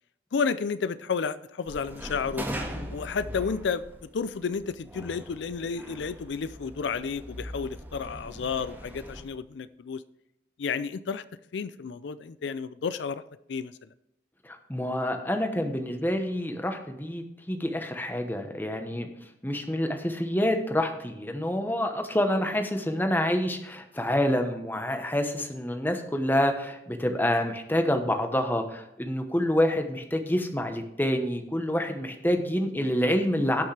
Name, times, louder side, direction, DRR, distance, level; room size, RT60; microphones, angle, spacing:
voice 1, 0.3-2.4 2.9-3.8 4.1-10.0 10.6-11.2 11.5-13.2 13.5-13.7, left 5 dB, 75° left, 14 dB, 0.4 m, -31 dB
sound 1, 1.7-9.2, equal, 10° right, 1.6 m, -40 dB
voice 2, 14.4-19.1 19.4-33.6, left 1 dB, 10° left, 5 dB, 1.0 m, -27 dB
17.5 x 6.3 x 3.3 m, 0.84 s
head